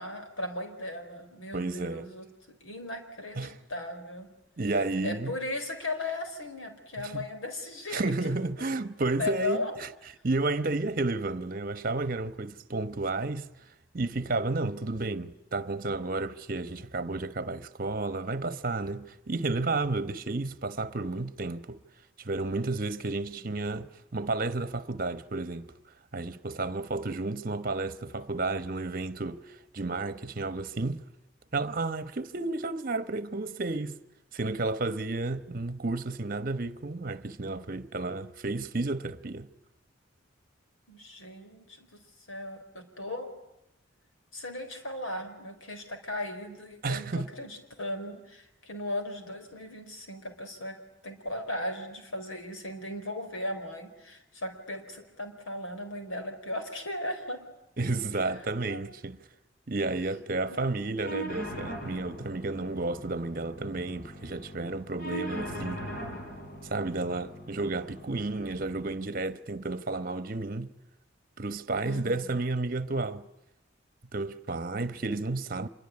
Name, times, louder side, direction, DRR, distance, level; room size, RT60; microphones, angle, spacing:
voice 1, 0.0-4.3 5.0-8.4 9.2-9.7 23.3-23.5 40.9-42.0 42.3-43.3 44.3-57.4 58.7-58.8 60.4-60.9 71.8-72.3 74.8-74.9, left 2 dB, 85° left, 4.6 m, -37 dB
voice 2, 1.5-2.1 3.4-3.6 4.6-5.3 7.0-7.2 7.9-9.9 10.2-13.5 13.9-21.8 22.2-25.7 26.1-31.0 31.5-34.0 34.3-39.5 46.8-47.3 57.8-59.2 59.7-65.8 66.6-70.7 71.4-73.3 74.1-75.7, right 2 dB, 45° right, 1.0 m, -32 dB
sound 1, 61.0-69.0, right 1 dB, 45° left, 5.5 m, -41 dB
26.5 x 22.5 x 9.8 m
head